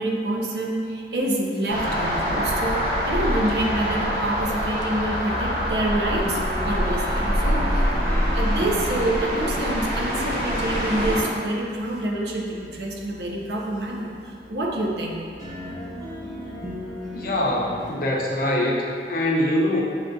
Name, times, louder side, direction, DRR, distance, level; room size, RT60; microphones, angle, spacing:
voice 1, 0.0-7.9 8.3-15.2, right 1 dB, 70° right, -1 dB, 0.5 m, -27 dB
sound 1, 1.7-11.2, equal, 50° right, 0.9 m, -25 dB
sound 2, 6.1-17.9, left 1 dB, 20° right, 0.8 m, -37 dB
voice 2, 17.1-19.8, left 1 dB, 50° left, -2 dB, 0.5 m, -23 dB
6.4 x 2.3 x 2.5 m, 2.3 s
head